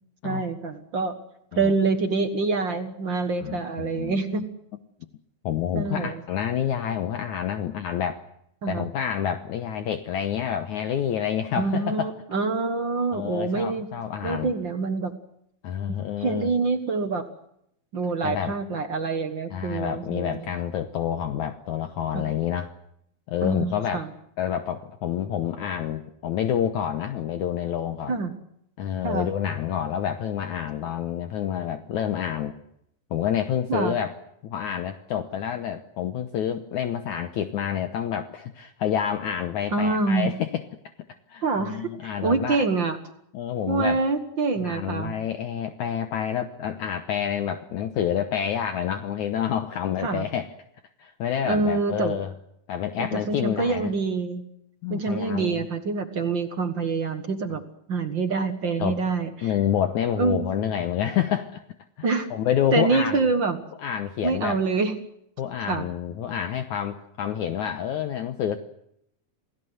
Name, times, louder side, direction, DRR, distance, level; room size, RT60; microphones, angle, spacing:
voice 1, 0.2-1.1 1.5-4.4 5.7-6.1 8.6-8.9 11.6-13.9 14.2-15.1 15.9-17.2 17.9-20.5 22.1-22.3 23.4-24.1 28.1-28.3 29.0-29.3 33.7-34.0 39.7-40.3 41.4-43.0 43.7-45.1 50.0-50.2 51.5-52.2 53.0-54.4 54.9-57.6 57.9-59.5 60.2-60.5 62.0-62.3 62.7-63.6 64.2-64.9 65.7-65.9, right 4 dB, 50° right, 7 dB, 1.4 m, -26 dB
voice 2, 3.4-4.2 5.4-8.2 8.7-12.1 13.1-14.5 15.6-16.5 18.2-18.6 19.5-22.7 23.3-24.0 24.4-28.2 28.8-32.6 33.1-34.1 34.4-40.6 41.3-42.6 43.3-44.0 44.6-50.5 51.0-52.3 52.7-53.9 54.8-55.7 58.8-59.0 59.4-61.6 62.0-63.2 63.8-64.6 65.4-68.6, left 9 dB, 65° left, 8 dB, 2.1 m, -28 dB
28.0 x 18.0 x 8.0 m, 0.75 s
omnidirectional pair, 4.2 m